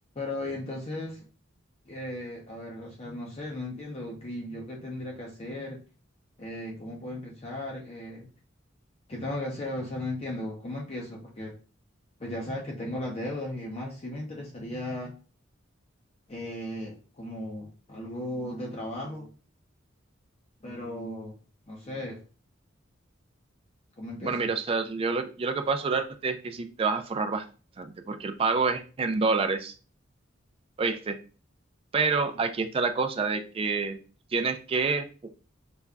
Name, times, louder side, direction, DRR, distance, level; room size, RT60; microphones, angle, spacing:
voice 1, 0.1-1.2 1.9-5.8 6.4-8.3 9.1-11.5 12.2-15.1 16.3-19.3 20.6-21.4 21.7-22.2 24.0-24.5, left 1 dB, 35° left, -1 dB, 0.5 m, -36 dB
voice 2, 24.2-27.4 27.8-29.7 30.8-31.2 31.9-34.0 34.3-35.1, right 4 dB, 30° right, 7 dB, 0.3 m, -27 dB
5.0 x 2.2 x 2.3 m, 0.36 s
head